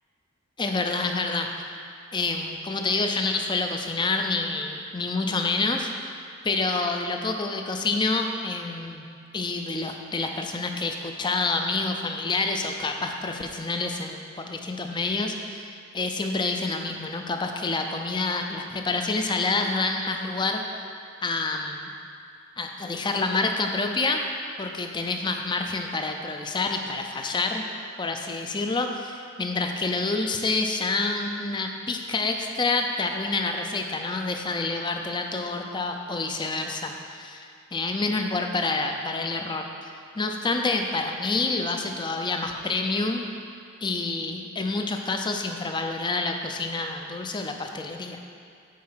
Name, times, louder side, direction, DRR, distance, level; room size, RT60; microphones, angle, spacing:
voice 1, 0.6-1.5 2.1-6.1 6.4-9.1 9.3-20.6 21.2-21.9 22.6-24.2 24.6-27.7 28.0-43.2 43.8-48.2, left 3 dB, 20° left, 4 dB, 0.5 m, -28 dB
8.5 x 4.3 x 5.7 m, 2.4 s
head